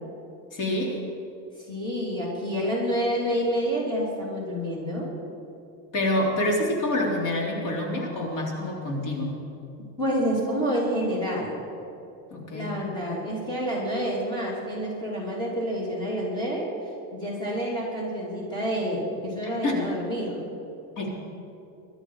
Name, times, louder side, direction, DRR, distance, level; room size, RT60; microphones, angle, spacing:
voice 1, 0.5-1.0 5.9-9.3 12.3-12.7 19.6-19.8 21.0-21.1, left 1 dB, 60° left, -1 dB, 3.7 m, -27 dB
voice 2, 1.7-5.1 10.0-11.6 12.5-16.7 17.1-20.4, equal, 10° left, -5 dB, 3.0 m, -28 dB
23.0 x 12.5 x 4.8 m, 2.7 s
cardioid pair, 175°, 35 cm